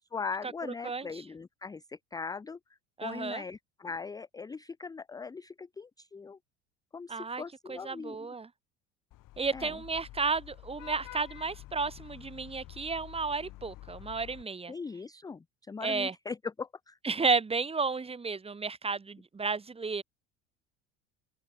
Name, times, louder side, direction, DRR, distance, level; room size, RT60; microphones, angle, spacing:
voice 1, 0.0-2.6 3.0-6.4 6.9-8.3 9.5-9.8 14.7-17.0, left 5 dB, 10° left, 0.5 m, -40 dB
voice 2, 0.8-1.2 3.0-3.4 7.1-7.4 7.7-8.5 9.4-14.7 15.8-16.1 17.0-20.0, right 4 dB, 15° right, 1.0 m, -32 dB
Vehicle horn car horn honking / Traffic noise roadway noise, 9.1-14.4, left 16 dB, 55° left, 6.7 m, -48 dB
hypercardioid pair, 70°, 39 cm